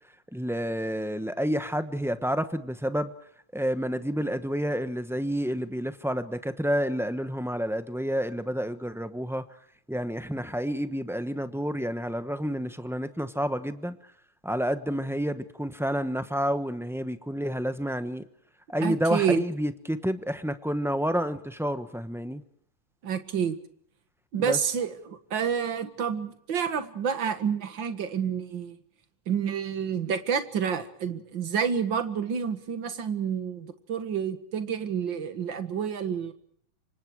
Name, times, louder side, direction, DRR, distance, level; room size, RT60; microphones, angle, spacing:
voice 1, 0.3-3.1 3.5-9.4 9.9-14.0 14.4-18.2 18.7-22.4 24.4-24.6, equal, ahead, 10 dB, 0.7 m, -29 dB
voice 2, 18.8-19.4 23.0-23.6 24.3-28.8 29.3-36.3, right 7 dB, 70° right, 10 dB, 2.4 m, -29 dB
27.5 x 25.0 x 4.8 m, 0.67 s
omnidirectional pair, 2.1 m